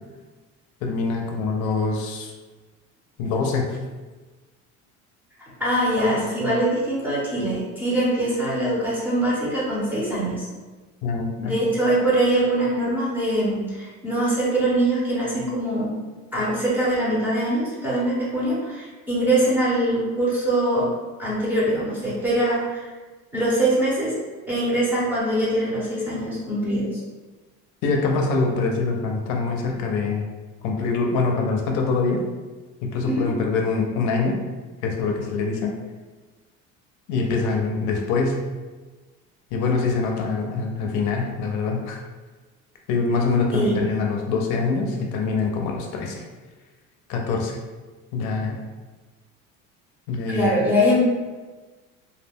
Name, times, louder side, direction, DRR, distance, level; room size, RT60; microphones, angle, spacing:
voice 1, 0.8-2.3 3.2-3.8 11.0-11.5 27.8-30.3 30.6-32.2 32.8-34.4 34.8-35.7 37.1-38.5 39.5-42.0 42.9-46.2 47.1-47.6 48.1-48.6 50.1-50.5, left 4 dB, 70° left, 1 dB, 0.5 m, -24 dB
voice 2, 5.4-10.5 11.4-15.9 16.3-20.9 21.2-22.9 23.3-24.2 24.5-27.0 33.0-33.3 43.5-43.8 50.3-51.0, right 1 dB, 5° right, -8 dB, 0.6 m, -23 dB
2.3 x 2.1 x 3.3 m, 1.3 s
cardioid pair, 165°, 31 cm